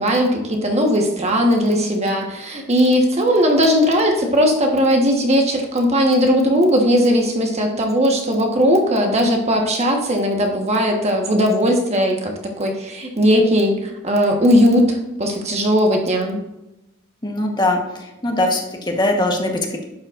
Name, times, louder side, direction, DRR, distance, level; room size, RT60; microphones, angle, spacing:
voice 1, 0.0-12.3 12.6-16.4, equal, 35° right, 2 dB, 1.3 m, -18 dB
voice 2, 17.2-17.8 18.2-19.8, left 1 dB, 20° left, 1 dB, 1.2 m, -20 dB
11.5 x 7.5 x 2.5 m, 0.95 s
head